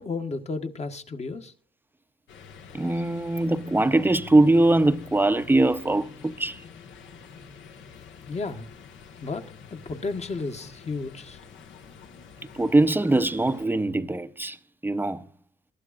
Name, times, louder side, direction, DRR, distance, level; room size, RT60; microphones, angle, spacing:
voice 1, 0.0-1.5 8.2-8.7 9.2-11.4, left 3 dB, 35° left, 1.3 m, -33 dB
sound 1, 2.3-13.7, left 5 dB, 75° left, 1.5 m, -47 dB
voice 2, 2.7-6.6 12.5-14.6 14.8-15.2, right 2 dB, 10° right, 0.7 m, -22 dB
22.0 x 12.0 x 2.5 m
cardioid pair, 90°, 20 cm